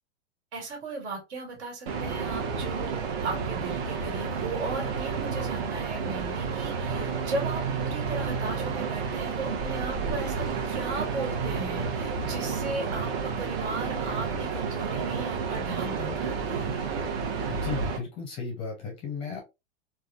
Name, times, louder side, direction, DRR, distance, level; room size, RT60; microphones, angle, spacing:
voice 1, 0.5-16.7, right 3 dB, 75° right, 2 dB, 1.8 m, -37 dB
sound 1, 1.9-18.0, right 5 dB, 60° right, 0.9 m, -30 dB
voice 2, 17.5-19.4, left 5 dB, 15° left, 2 dB, 0.5 m, -35 dB
3.3 x 2.2 x 2.3 m, 0.25 s
supercardioid pair, 160°, 34 cm